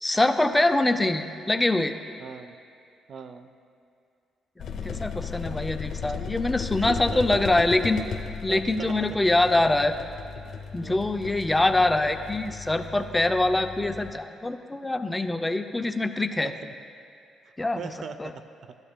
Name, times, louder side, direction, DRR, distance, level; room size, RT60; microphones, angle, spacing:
voice 1, 0.0-1.9 4.6-8.0 8.4-9.9 10.7-16.5 17.6-17.9 18.2-18.3, left 2 dB, 15° left, 8 dB, 0.4 m, -24 dB
voice 2, 2.2-2.6 3.1-3.5 6.8-7.4 8.5-9.2 10.8-11.2 16.4-16.7 17.8-18.8, right 6 dB, 55° right, 10 dB, 0.5 m, -39 dB
sound 1, 4.6-14.1, left 6 dB, 65° left, 0.7 m, -36 dB
13.5 x 11.5 x 2.3 m, 2.3 s
cardioid pair, 90°, 0 cm